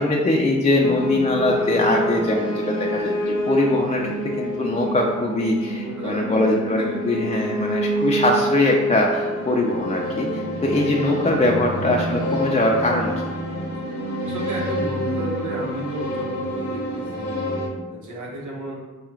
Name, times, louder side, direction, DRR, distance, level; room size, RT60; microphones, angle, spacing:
voice 1, 0.0-13.1, left 1 dB, 25° left, -1 dB, 0.4 m, -22 dB
sound 1, 0.8-17.7, equal, 75° left, 0.9 m, -27 dB
sound 2, 1.3-17.0, right 3 dB, 60° right, 0.7 m, -37 dB
voice 2, 5.8-7.2 14.2-17.3 17.9-18.8, right 1 dB, 90° right, -3 dB, 0.9 m, -33 dB
4.6 x 2.3 x 3.1 m, 1.3 s
wide cardioid pair, 90°, 29 cm